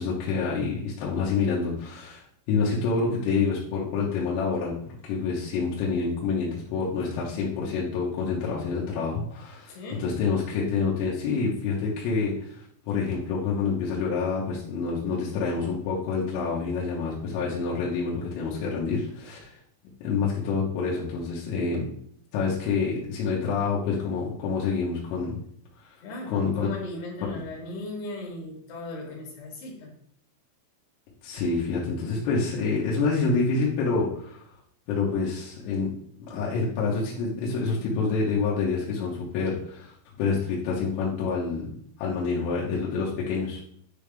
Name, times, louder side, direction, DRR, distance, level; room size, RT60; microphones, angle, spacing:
voice 1, 0.0-2.2 2.5-19.6 20.0-21.9 22.3-25.4 26.3-26.7 31.2-34.4 34.9-35.9 36.3-41.7 42.0-43.6, left 4 dB, 80° left, -5 dB, 3.5 m, -27 dB
voice 2, 9.7-10.1 26.0-29.9, left 2 dB, 60° left, -2 dB, 3.5 m, -37 dB
9.8 x 3.4 x 3.4 m, 0.64 s
omnidirectional pair, 5.9 m